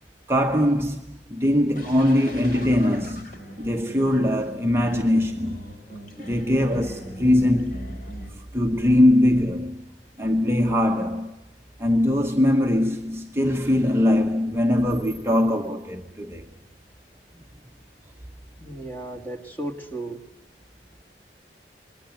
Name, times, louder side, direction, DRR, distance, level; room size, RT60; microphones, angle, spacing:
voice 1, 0.3-3.3 3.6-5.6 6.2-8.0 8.5-9.8 10.2-11.3 11.8-16.5, left 1 dB, 15° right, 1.0 m, -21 dB
sound 1, 1.8-8.3, equal, 50° left, 4.7 m, -40 dB
voice 2, 18.6-20.2, right 1 dB, 10° left, 2.1 m, -34 dB
28.5 x 22.0 x 7.9 m
head